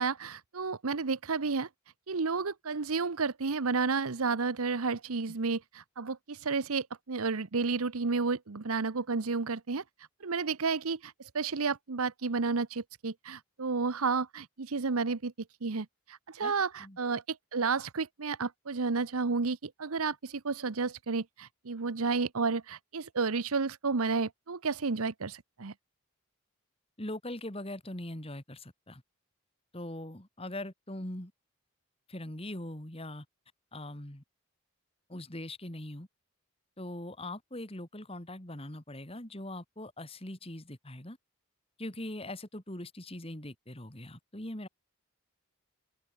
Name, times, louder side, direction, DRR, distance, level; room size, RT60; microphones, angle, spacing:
voice 1, 0.0-1.7 2.1-15.3 15.6-25.7, right 4 dB, 80° right, 0.9 m, -31 dB
voice 2, 27.0-29.0 29.7-31.3 32.1-33.3 33.7-34.2 35.1-36.1 36.8-41.2 41.8-44.7, left 1 dB, 25° left, 2.5 m, -41 dB
open air
head